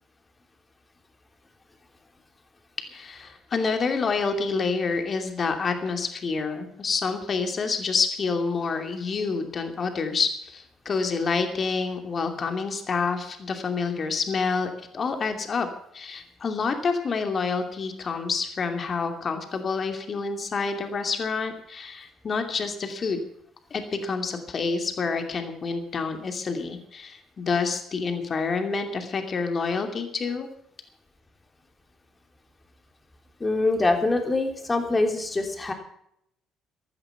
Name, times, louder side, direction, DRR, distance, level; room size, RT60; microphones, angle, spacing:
voice 1, 2.9-15.7 15.9-23.2 23.7-30.5, left 4 dB, 40° left, 6 dB, 2.7 m, -28 dB
voice 2, 33.4-35.7, left 2 dB, 25° left, 4 dB, 3.4 m, -24 dB
13.5 x 13.5 x 5.9 m, 0.71 s
hypercardioid pair, 50°, 0 cm